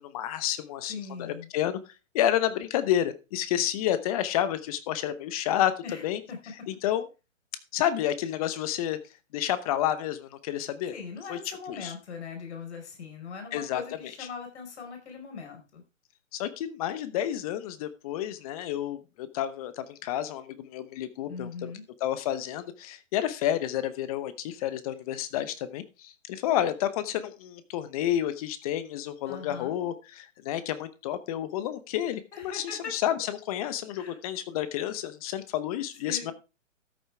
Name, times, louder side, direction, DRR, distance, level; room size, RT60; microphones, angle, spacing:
voice 1, 0.0-1.8 2.1-5.7 6.0-6.2 6.7-7.0 7.7-9.0 9.3-10.9 11.3-11.4 11.7-11.9 13.5-13.8 14.2-14.3 16.3-21.7 22.0-36.3, left 11 dB, 30° left, 13 dB, 0.9 m, -30 dB
voice 2, 0.9-1.5 5.8-6.4 10.9-15.8 21.3-21.8 29.3-29.7 32.3-32.9 33.9-34.2 36.0-36.3, left 5 dB, 60° left, 4 dB, 4.6 m, -40 dB
13.5 x 8.1 x 3.4 m, 0.29 s
hypercardioid pair, 135°, 38 cm